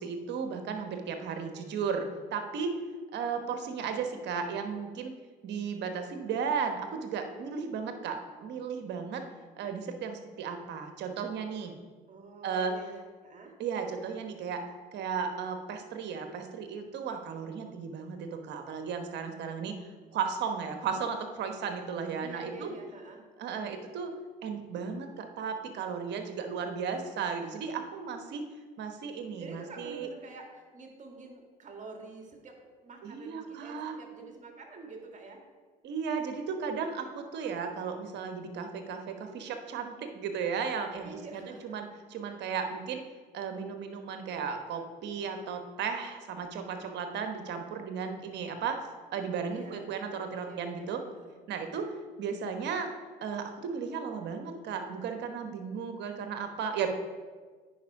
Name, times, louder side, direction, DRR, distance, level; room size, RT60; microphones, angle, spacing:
voice 1, 0.0-2.8 3.1-5.1 5.4-9.2 9.6-11.7 12.4-12.7 13.6-14.6 14.9-19.7 20.1-22.7 23.4-24.1 24.4-28.4 28.8-30.1 33.0-34.0 35.8-43.0 43.3-48.8 49.1-51.0 51.5-51.9 52.2-52.9 53.2-56.9, right 6 dB, 60° right, 6 dB, 1.1 m, -35 dB
voice 2, 12.1-13.5 22.2-23.3 29.4-35.4 41.0-41.8 49.5-51.4, right 3 dB, 35° right, 2 dB, 1.9 m, -47 dB
9.3 x 5.3 x 4.8 m, 1.5 s
hypercardioid pair, 65°, 20 cm